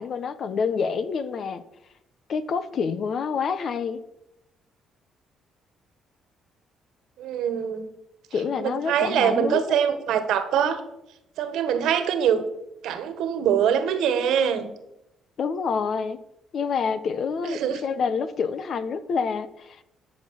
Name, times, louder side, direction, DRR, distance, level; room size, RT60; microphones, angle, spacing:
voice 1, 0.0-1.6 2.3-4.0 8.3-9.8 15.4-16.2 16.5-19.8, left 5 dB, 55° left, 13 dB, 1.1 m, -27 dB
voice 2, 7.2-7.9 8.6-10.8 11.4-12.4 12.8-14.7 17.4-17.8, right 8 dB, 80° right, 10 dB, 1.7 m, -23 dB
11.5 x 6.7 x 7.6 m, 0.84 s
cardioid pair, 100°, 0 cm